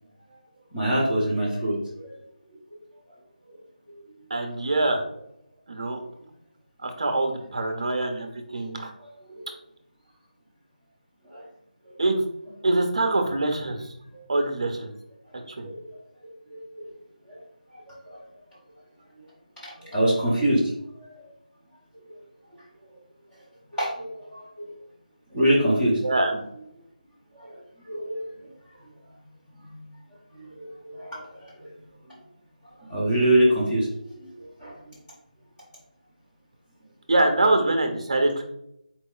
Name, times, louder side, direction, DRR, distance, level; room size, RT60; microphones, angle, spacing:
voice 1, 0.7-2.1 8.6-8.7 9.0-9.5 11.3-11.4 15.6-15.8 16.5-16.8 17.3-17.4 17.7-18.2 19.8-20.6 21.0-21.3 23.8-24.7 25.3-26.0 27.3-27.5 27.9-28.2 30.3-31.5 32.9-34.3 34.6-34.8, right 1 dB, 5° left, -11 dB, 0.9 m, -25 dB
voice 2, 4.3-5.0 5.7-6.0 6.8-8.9 12.0-12.2 12.6-13.8 14.3-14.9 15.6-15.7 26.0-26.4 37.1-38.4, right 2 dB, 40° right, 4 dB, 0.7 m, -24 dB
4.3 x 2.9 x 3.8 m, 0.78 s
figure-of-eight pair, 175°, 5 cm